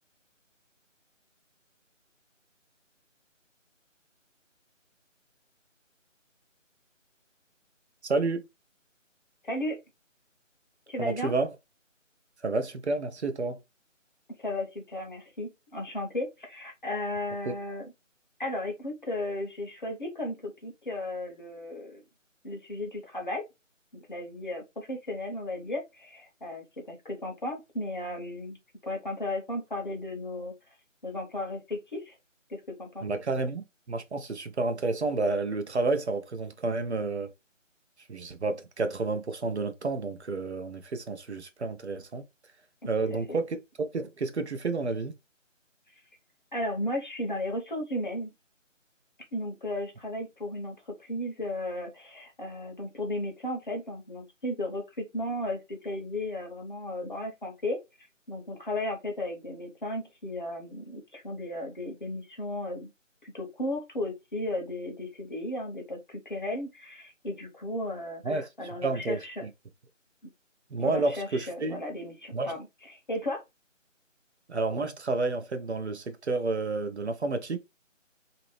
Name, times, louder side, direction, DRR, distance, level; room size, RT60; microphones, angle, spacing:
voice 1, 8.0-8.5 11.0-11.5 12.4-13.6 17.5-17.6 33.0-37.3 38.1-42.3 42.9-43.6 43.9-45.2 68.2-68.5 68.8-69.5 70.7-71.8 72.3-72.6 74.5-77.6, right 3 dB, 60° right, 0.6 m, -30 dB
voice 2, 9.4-9.8 10.9-11.3 14.4-17.8 18.4-22.0 22.4-23.4 23.9-28.6 28.8-30.5 31.0-32.2 32.5-33.1 43.1-43.2 46.5-48.3 49.3-57.8 58.3-62.9 63.2-69.4 70.8-72.7 73.1-73.4, left 1 dB, 40° left, 0.8 m, -35 dB
2.7 x 2.6 x 3.0 m
figure-of-eight pair, 165°, 39 cm